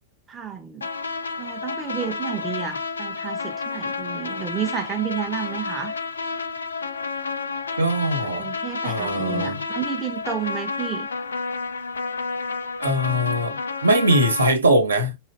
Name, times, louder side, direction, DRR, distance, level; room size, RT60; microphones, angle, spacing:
voice 1, 0.3-0.9 1.4-5.9 8.2-11.1, right 8 dB, 20° right, 0.6 m, -31 dB
sound 1, 0.8-14.5, left 4 dB, 80° left, 0.3 m, -30 dB
voice 2, 7.8-8.5 8.8-9.6 12.8-15.2, right 1 dB, 85° right, 1.0 m, -21 dB
4.3 x 2.4 x 2.3 m
figure-of-eight pair, 95°, 0 cm